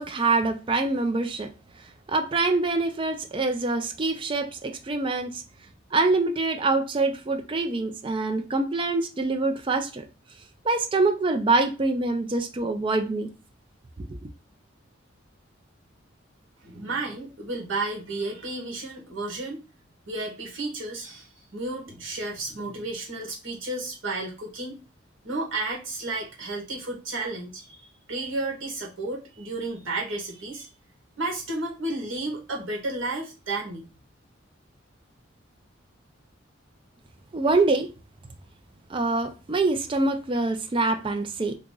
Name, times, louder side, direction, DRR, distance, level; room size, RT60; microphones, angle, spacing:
voice 1, 0.0-1.5 2.1-5.4 5.9-10.0 10.6-13.3 14.0-14.2 37.3-37.9 38.9-41.5, right 3 dB, 25° right, 0.4 m, -25 dB
voice 2, 16.6-19.6 20.1-24.8 25.2-30.7 31.2-33.8, right 2 dB, 75° right, 1.3 m, -32 dB
2.9 x 2.5 x 3.7 m
head